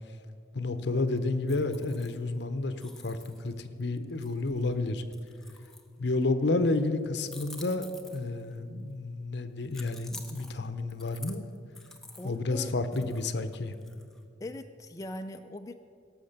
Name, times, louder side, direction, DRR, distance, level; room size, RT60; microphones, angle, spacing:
voice 1, 0.5-5.0 6.0-11.5 12.2-13.8, left 2 dB, 60° left, 10 dB, 0.8 m, -30 dB
sound 1, 1.2-2.4 2.8-6.2 7.2-8.6 9.7-12.4 12.9-14.2, left 2 dB, ahead, 0.8 m, -50 dB
voice 2, 12.2-13.1 14.4-15.7, left 1 dB, 20° left, 5 dB, 0.4 m, -41 dB
17.0 x 6.5 x 6.7 m, 2.3 s
head